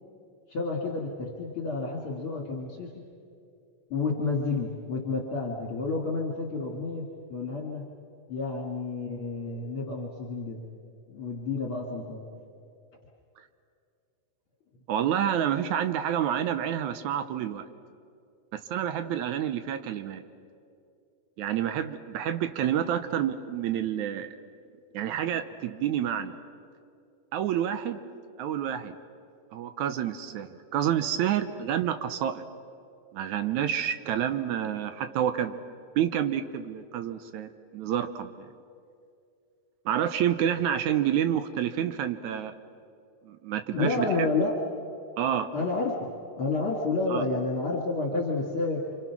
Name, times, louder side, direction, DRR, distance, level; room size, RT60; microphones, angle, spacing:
voice 1, 0.5-3.0 3.9-7.9 8.3-10.6 11.1-12.2 43.7-44.6 45.5-46.0 46.4-48.8, left 3 dB, 45° left, -1 dB, 2.7 m, -30 dB
voice 2, 14.9-17.7 18.5-20.2 21.4-24.4 24.9-26.4 27.3-28.0 28.4-29.0 29.5-32.5 33.1-35.6 36.0-38.5 39.9-42.5 43.2-44.1 45.2-45.5 47.1-47.2, right 10 dB, 70° right, 10 dB, 1.9 m, -28 dB
29.5 x 25.5 x 6.0 m, 2.4 s
omnidirectional pair, 4.0 m